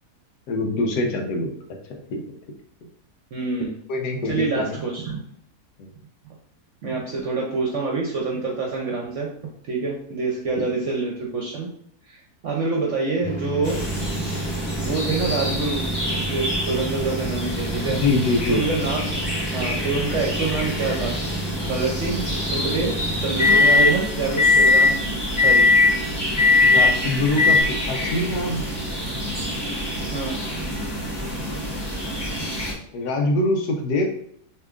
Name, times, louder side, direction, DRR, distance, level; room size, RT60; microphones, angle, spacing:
voice 1, 0.5-1.5 2.1-2.2 3.9-4.8 5.8-5.9 10.5-10.6 17.9-18.6 26.6-28.7 31.4-31.7 32.9-34.1, left 2 dB, 90° left, 1 dB, 1.3 m, -24 dB
voice 2, 3.3-3.7 4.2-5.2 6.8-9.3 9.7-11.7 12.1-13.8 14.8-15.8 16.3-18.0 18.5-19.0 19.5-21.2 21.6-25.1 25.4-25.7 30.1-30.4, right 3 dB, 60° right, -1 dB, 1.0 m, -26 dB
sound 1, 13.2-23.9 24.4-24.9 25.4-25.9 26.4-26.9 27.4-27.6, left 3 dB, 10° right, 1.6 m, -22 dB
sound 2, 13.6-32.7, equal, 20° left, 1.0 m, -28 dB
6.5 x 3.2 x 2.5 m, 0.65 s
omnidirectional pair, 1.7 m